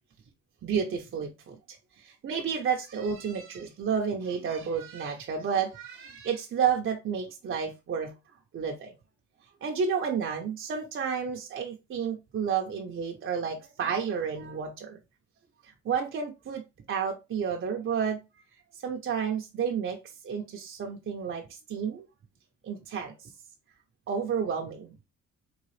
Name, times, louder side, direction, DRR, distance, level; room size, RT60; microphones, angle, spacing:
voice 1, 0.6-1.6 2.0-8.1 8.5-9.0 9.6-15.0 15.6-16.6 16.9-18.2 18.8-20.0 20.2-22.1 22.6-23.3 24.1-25.0, right 7 dB, 45° right, 0.6 m, -31 dB
3.8 x 2.4 x 3.1 m
cardioid pair, 90°, 30 cm